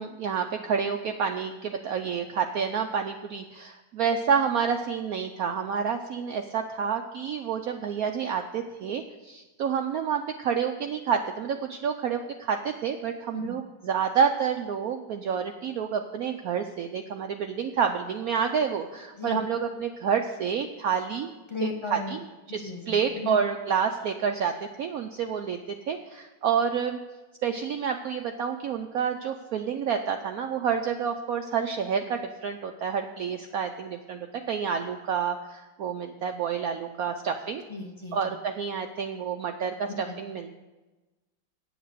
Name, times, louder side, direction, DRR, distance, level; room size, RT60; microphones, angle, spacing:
voice 1, 0.0-21.3 21.9-22.2 22.5-25.6 25.9-27.0 27.4-37.6 38.1-40.6, right 7 dB, 70° right, 5 dB, 0.9 m, -29 dB
voice 2, 21.5-22.2 22.5-23.4 37.7-38.3 39.9-40.2, left 5 dB, 20° left, 3 dB, 0.9 m, -36 dB
8.8 x 7.8 x 6.7 m, 1.1 s
omnidirectional pair, 2.0 m